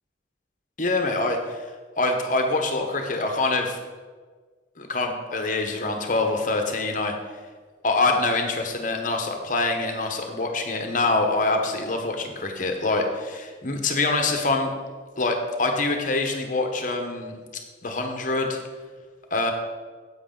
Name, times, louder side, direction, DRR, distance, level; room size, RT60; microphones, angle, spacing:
voice 1, 0.8-1.6 2.0-3.8 4.8-7.1 7.8-14.7 15.2-17.4 17.8-18.6 19.3-19.5, left 2 dB, 45° left, 4 dB, 1.1 m, -25 dB
9.5 x 8.0 x 3.9 m, 1.4 s
head